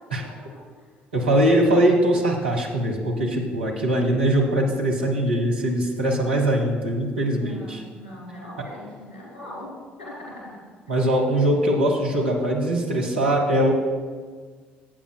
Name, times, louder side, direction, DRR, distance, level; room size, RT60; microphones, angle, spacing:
voice 1, 1.1-7.8 10.9-13.7, right 1 dB, 80° right, 0 dB, 1.0 m, -21 dB
voice 2, 7.1-10.6 10.9-11.0, left 1 dB, 75° left, -5 dB, 2.8 m, -41 dB
13.5 x 8.4 x 2.2 m, 1.5 s
figure-of-eight pair, 50°, 6 cm